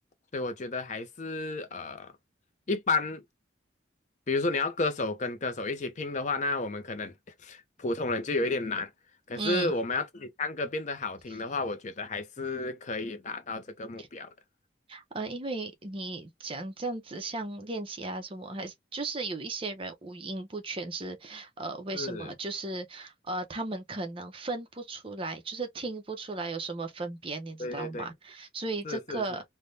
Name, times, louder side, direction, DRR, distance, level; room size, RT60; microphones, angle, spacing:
voice 1, 0.3-2.1 2.7-3.2 4.3-7.1 7.4-8.9 9.3-14.3 21.9-22.3 27.6-28.1 28.8-29.2, left 3 dB, 40° left, 0.5 m, -32 dB
voice 2, 9.4-9.7 14.0-14.1 14.9-29.4, right 3 dB, 30° right, 0.6 m, -36 dB
3.3 x 2.1 x 2.6 m
head